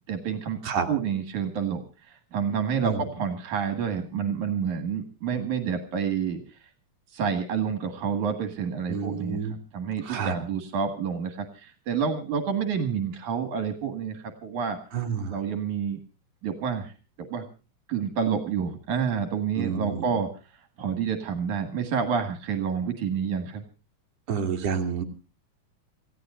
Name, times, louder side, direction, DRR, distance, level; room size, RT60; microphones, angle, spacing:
voice 1, 0.1-0.6 0.9-6.4 7.1-9.4 9.7-14.8 15.3-16.0 16.4-16.9 17.3-17.4 17.9-20.3 20.8-23.6, right 7 dB, 75° right, 7 dB, 3.2 m, -28 dB
voice 2, 8.9-9.5 10.0-10.3 14.9-15.4 19.6-20.0 24.3-25.0, right 6 dB, 60° right, 1 dB, 3.3 m, -29 dB
28.0 x 16.0 x 2.5 m, 0.33 s
omnidirectional pair, 3.5 m